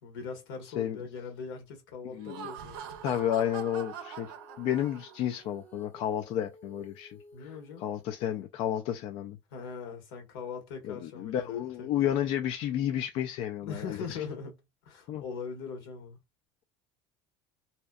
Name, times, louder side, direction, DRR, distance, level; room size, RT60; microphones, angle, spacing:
voice 1, 0.0-2.8 7.3-7.9 9.5-12.1 13.6-14.6 14.8-16.2, left 5 dB, 90° left, 1.1 m, -41 dB
voice 2, 2.0-2.5 3.0-7.5 7.8-9.4 10.8-14.2 15.1-15.2, left 11 dB, 55° left, 0.3 m, -32 dB
Laughter, 2.1-5.4, right 8 dB, 85° right, 0.6 m, -43 dB
Female singing, 2.7-8.5, left 2 dB, 15° left, 0.8 m, -55 dB
2.7 x 2.1 x 2.2 m
supercardioid pair, 115°, 12 cm